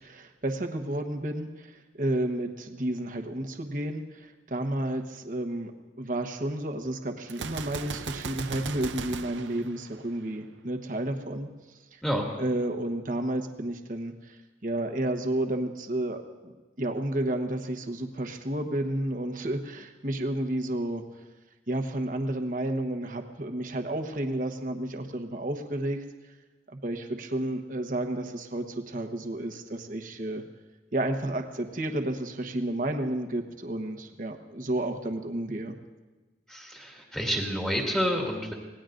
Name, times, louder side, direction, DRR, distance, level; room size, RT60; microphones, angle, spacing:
voice 1, 0.0-5.7 6.0-11.5 11.9-12.0 12.4-14.4 14.6-21.0 21.7-26.0 26.7-30.4 30.9-35.7, right 1 dB, 45° right, 4 dB, 1.1 m, -31 dB
Gunshot gunfire, 7.3-10.4, right 5 dB, 90° right, 0.6 m, -38 dB
voice 2, 36.5-38.5, equal, 5° left, -1 dB, 2.1 m, -29 dB
26.0 x 18.5 x 2.6 m, 1.2 s
head